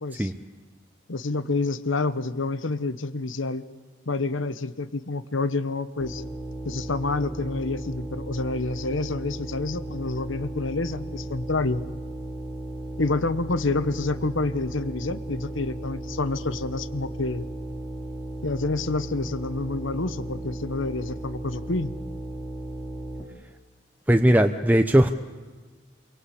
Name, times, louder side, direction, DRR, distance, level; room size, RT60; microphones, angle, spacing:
voice 1, 0.0-0.3 1.1-3.6 4.1-6.2 6.6-11.9 13.0-17.5 18.4-21.9, left 3 dB, 90° left, 13 dB, 1.1 m, -28 dB
sound 1, 6.0-23.2, right 1 dB, 15° left, 3.5 m, -35 dB
voice 2, 24.1-25.1, right 1 dB, 10° right, 7 dB, 0.9 m, -18 dB
28.5 x 23.5 x 8.5 m, 1.4 s
head